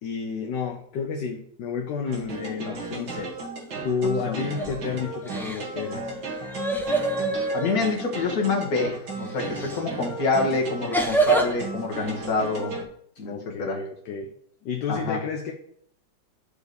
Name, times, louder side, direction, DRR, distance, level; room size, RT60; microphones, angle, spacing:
voice 1, 0.0-3.3 3.8-6.1 13.2-14.3 14.6-15.5, left 6 dB, 70° left, 2 dB, 1.4 m, -31 dB
sound 1, 2.1-12.8, right 3 dB, 75° right, 2.4 m, -35 dB
voice 2, 4.3-4.7 7.5-12.8 13.2-13.3 13.6-13.8 14.9-15.2, left 3 dB, 50° left, 0 dB, 1.9 m, -26 dB
sound 2, 4.4-4.8 5.2-7.8 9.6-9.8 10.9-11.5, right 2 dB, ahead, 0.5 m, -26 dB
6.8 x 4.6 x 6.7 m, 0.65 s
omnidirectional pair, 2.1 m